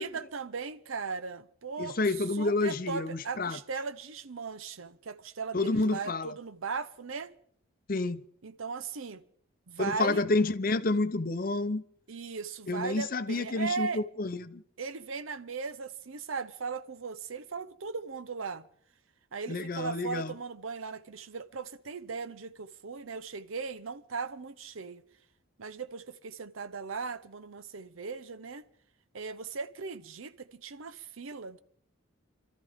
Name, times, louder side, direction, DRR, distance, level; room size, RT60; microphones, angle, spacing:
voice 1, 0.0-2.0 2.4-7.3 8.4-9.2 9.7-10.2 12.1-14.0 14.8-18.7 19.3-25.0 25.6-28.6 29.1-31.6, right 5 dB, 80° right, 0.8 m, -38 dB
voice 2, 1.8-3.6 5.5-6.3 7.9-8.2 9.8-11.8 12.7-14.6 19.5-20.4, left 2 dB, 45° left, 0.6 m, -29 dB
28.0 x 13.5 x 3.6 m
head